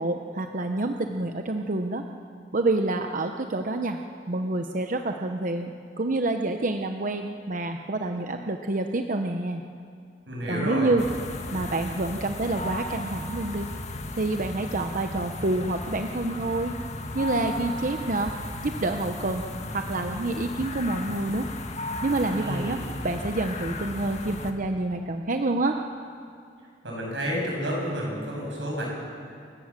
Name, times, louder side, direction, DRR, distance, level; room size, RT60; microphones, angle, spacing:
voice 1, 0.0-2.0 2.5-4.0 4.3-9.6 10.5-11.0 11.5-13.7 14.2-16.7 17.1-18.4 18.6-19.5 19.7-21.5 22.0-25.8, right 2 dB, 50° right, 5 dB, 0.8 m, -28 dB
voice 2, 10.3-10.9 22.3-22.9 26.8-28.8, equal, 90° right, -2 dB, 7.4 m, -30 dB
sound 1, 11.0-24.5, left 2 dB, 40° left, 1.5 m, -35 dB
28.5 x 15.0 x 7.4 m, 2.4 s
head